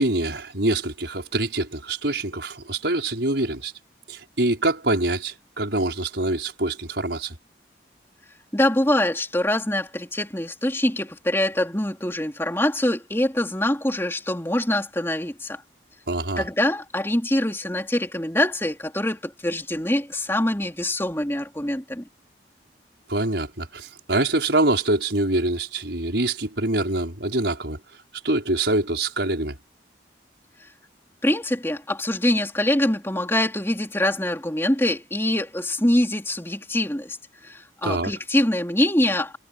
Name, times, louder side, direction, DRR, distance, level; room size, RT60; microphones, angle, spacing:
voice 1, 0.0-3.7 4.1-7.3 16.1-16.4 23.1-27.8 28.2-29.6 37.8-38.1, right 2 dB, 80° right, 5.2 m, -25 dB
voice 2, 8.5-15.6 16.4-22.0 30.6-30.7 31.2-37.2 37.4-39.4, left 1 dB, 15° left, 3.4 m, -24 dB
head